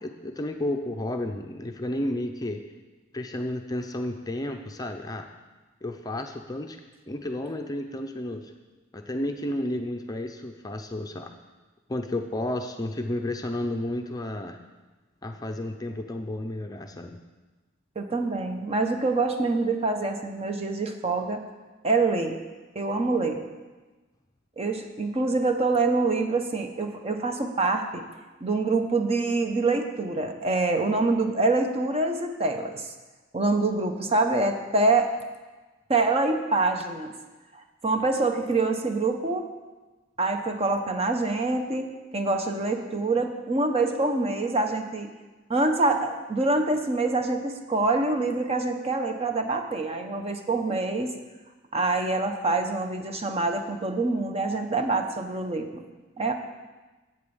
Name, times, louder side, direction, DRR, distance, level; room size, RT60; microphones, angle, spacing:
voice 1, 0.0-2.6 3.1-5.3 5.8-6.8 7.1-8.5 8.9-11.3 11.9-14.6 15.2-17.2, left 1 dB, 20° left, 4 dB, 0.6 m, -32 dB
voice 2, 18.0-21.4 21.8-22.4 22.7-23.4 24.6-28.0 28.4-32.9 33.3-35.1 35.9-37.2 37.5-39.5 40.2-45.1 45.5-51.1 51.7-55.8 56.2-56.3, right 3 dB, 30° right, 5 dB, 0.9 m, -25 dB
8.5 x 8.1 x 7.0 m, 1.2 s
head